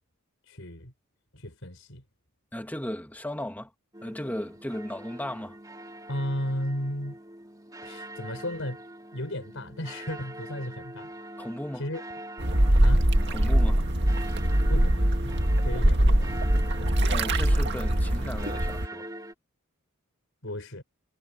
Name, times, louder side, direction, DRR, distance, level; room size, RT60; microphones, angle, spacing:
voice 1, 0.5-0.9 1.3-2.0 6.1-7.2 7.8-8.8 9.1-11.1 11.8-12.0 12.8-13.1 14.5-16.5 16.8-17.0 20.4-20.8, left 1 dB, 65° left, 6.6 m, -35 dB
voice 2, 2.5-3.7 4.0-5.6 11.4-11.9 13.3-13.9 17.1-19.1, left 1 dB, 10° left, 2.1 m, -36 dB
sound 1, 3.9-19.3, right 1 dB, 20° right, 2.8 m, -42 dB
sound 2, 12.4-18.9, right 1 dB, 55° right, 2.0 m, -23 dB
head